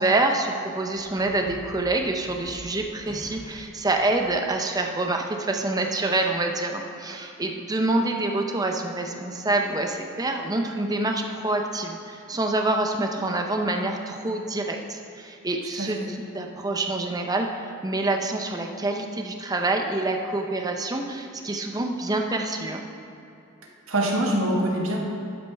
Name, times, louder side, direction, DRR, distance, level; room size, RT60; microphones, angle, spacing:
voice 1, 0.0-22.8, right 2 dB, 20° right, 3 dB, 0.7 m, -26 dB
sound 1, 0.9-4.4, equal, 25° left, 2.3 m, -45 dB
voice 2, 15.8-16.1 23.9-25.0, right 1 dB, 75° right, -2 dB, 1.6 m, -24 dB
12.0 x 8.7 x 3.4 m, 2.7 s
head